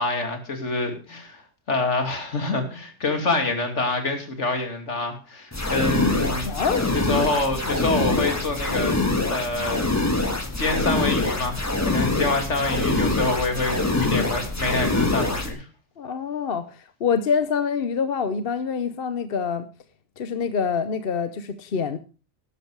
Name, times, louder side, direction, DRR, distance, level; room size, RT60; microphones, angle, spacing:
voice 1, 0.0-1.4 1.7-6.5 6.9-9.0 9.3-10.2 10.6-15.6, left 3 dB, 75° left, 5 dB, 2.8 m, -26 dB
sound 1, 5.5-15.5, left 2 dB, 15° left, 1.4 m, -24 dB
voice 2, 6.4-6.9 16.0-19.7 20.2-22.0, left 6 dB, 55° left, 12 dB, 1.0 m, -26 dB
12.0 x 11.0 x 4.7 m, 0.34 s
omnidirectional pair, 1.2 m